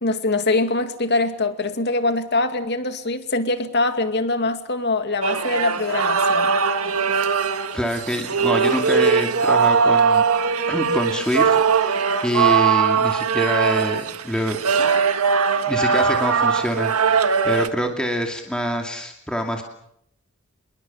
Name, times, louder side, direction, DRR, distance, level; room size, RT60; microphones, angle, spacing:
voice 1, 0.0-6.5, left 2 dB, 50° left, 8 dB, 2.4 m, -23 dB
sound 1, 5.2-17.7, right 5 dB, 75° right, 1.7 m, -20 dB
voice 2, 7.7-10.2 10.7-14.6 15.7-19.6, equal, 5° left, 2 dB, 2.5 m, -26 dB
27.5 x 22.0 x 7.3 m, 0.74 s
head